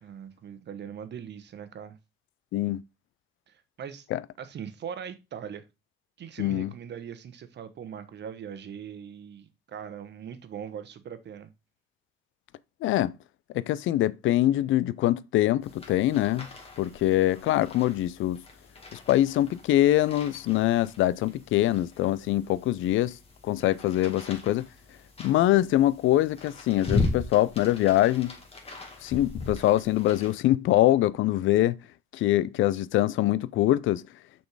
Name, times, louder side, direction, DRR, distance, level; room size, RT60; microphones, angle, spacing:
voice 1, 0.0-2.0 3.5-4.1 4.4-5.6 6.2-11.5, right 8 dB, 60° right, 1.1 m, -40 dB
voice 2, 2.5-2.8 4.1-4.2 6.4-6.7 12.8-13.2 13.5-16.5 16.8-18.4 18.9-23.2 23.4-24.7 25.2-28.3 29.0-31.8 32.1-34.1, left 14 dB, 80° left, 0.4 m, -24 dB
sound 1, 15.6-30.4, left 3 dB, 30° left, 2.0 m, -38 dB
6.5 x 4.4 x 4.7 m
cardioid pair, 90°, 20 cm